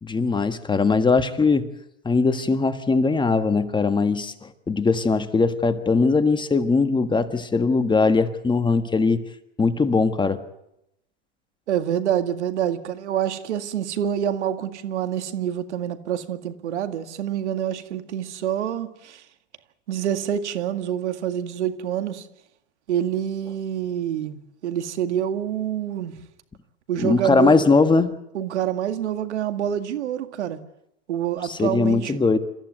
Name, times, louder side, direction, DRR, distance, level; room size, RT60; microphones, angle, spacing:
voice 1, 0.0-1.7 2.0-9.2 9.6-10.4 27.0-28.1 31.5-32.4, left 4 dB, 15° left, 1.5 m, -20 dB
voice 2, 11.7-19.2 19.9-22.3 22.9-26.2 26.9-27.6 28.3-30.6 31.1-32.3, right 10 dB, 80° right, 2.1 m, -27 dB
27.5 x 15.0 x 9.3 m
hypercardioid pair, 105°, 35 cm